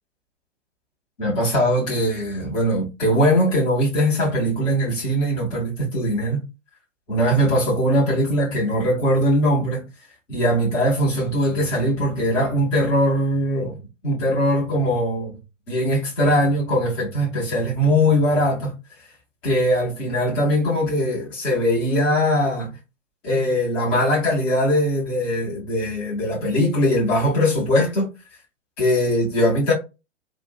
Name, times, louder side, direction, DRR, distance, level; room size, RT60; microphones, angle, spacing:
voice 1, 1.2-6.4 7.1-9.8 10.3-15.4 15.7-18.7 19.4-22.7 23.2-28.1 28.8-29.7, equal, 5° left, 0.3 m, -21 dB
4.5 x 2.4 x 4.2 m
figure-of-eight pair, 115°, 36 cm